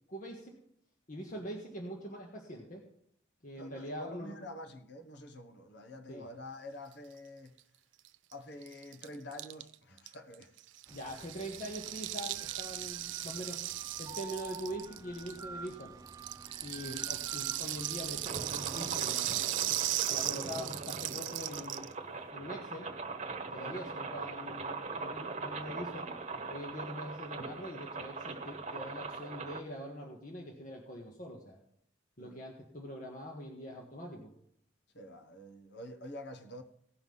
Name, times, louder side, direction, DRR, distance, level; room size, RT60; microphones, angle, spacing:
voice 1, 0.1-0.6 1.1-2.8 3.4-4.3 6.1-6.3 10.9-13.6 14.0-15.9 16.6-19.5 20.1-21.9 22.3-22.9 23.5-26.1 26.5-31.6 32.2-34.3, equal, 45° left, 1.7 m, -43 dB
voice 2, 3.5-7.6 8.3-10.5 11.2-11.3 16.8-17.1 17.6-17.8 23.6-23.8 32.2-32.4 34.9-36.6, left 1 dB, 65° left, 1.4 m, -48 dB
Rattle (instrument), 8.0-8.1 8.3-8.4 8.6-15.7 16.1-21.9, right 15 dB, 80° right, 0.4 m, -37 dB
sound 1, 10.9-18.9, right 3 dB, 20° right, 0.5 m, -50 dB
sound 2, 18.2-29.6, right 3 dB, 40° right, 1.1 m, -41 dB
17.5 x 5.8 x 5.6 m
head